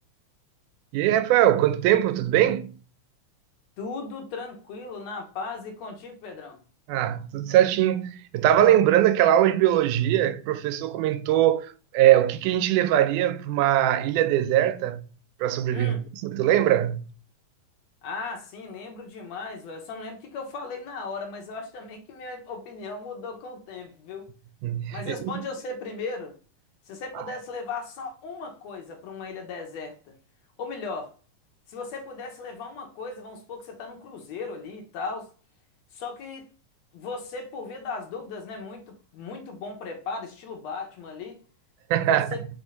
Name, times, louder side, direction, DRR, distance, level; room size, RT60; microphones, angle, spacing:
voice 1, 0.9-2.7 6.9-15.0 15.4-17.1 24.6-25.3 41.9-42.3, right 12 dB, 85° right, 2.1 m, -21 dB
voice 2, 3.8-6.6 15.7-16.1 18.0-24.3 24.9-26.3 26.9-30.1 30.6-31.1 31.7-35.3 35.9-36.4 36.9-41.4 42.1-42.4, left 4 dB, 65° left, 2.1 m, -37 dB
5.0 x 3.5 x 5.4 m
omnidirectional pair, 3.5 m